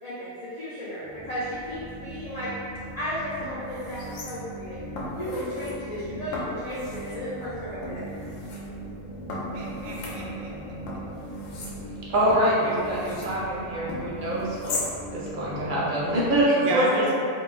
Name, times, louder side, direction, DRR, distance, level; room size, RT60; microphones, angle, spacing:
voice 1, 0.0-2.5 3.0-4.8 5.1-8.0, equal, 65° left, -11 dB, 0.4 m, -34 dB
sound 1, 1.0-16.4, right 1 dB, ahead, 0.6 m, -40 dB
sound 2, 2.9-3.0 3.4-4.6 5.0-5.7 6.3-7.2 7.8-8.6 9.3-10.6 10.9-13.4 13.9-14.9 15.3-15.4, left 2 dB, 85° left, 1.0 m, -37 dB
voice 2, 9.5-10.8 16.6-17.1, right 1 dB, 90° right, -3 dB, 1.0 m, -31 dB
voice 3, 12.1-14.8 15.1-17.1, right 1 dB, 50° right, -7 dB, 0.7 m, -24 dB
2.5 x 2.2 x 3.1 m, 2.5 s
omnidirectional pair, 1.3 m